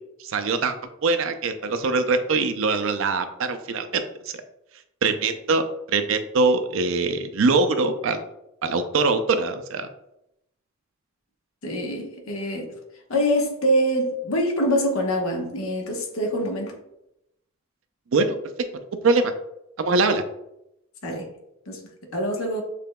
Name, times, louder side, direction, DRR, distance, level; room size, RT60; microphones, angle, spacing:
voice 1, 0.2-0.8 1.0-4.3 5.0-8.3 8.6-9.9 18.1-18.4 19.0-19.3 19.8-20.2, right 3 dB, 70° right, 0.5 m, -23 dB
voice 2, 11.6-12.7 13.1-16.8 21.0-21.3 21.7-21.8 22.1-22.6, equal, 75° left, 1.0 m, -24 dB
6.8 x 3.3 x 2.2 m
head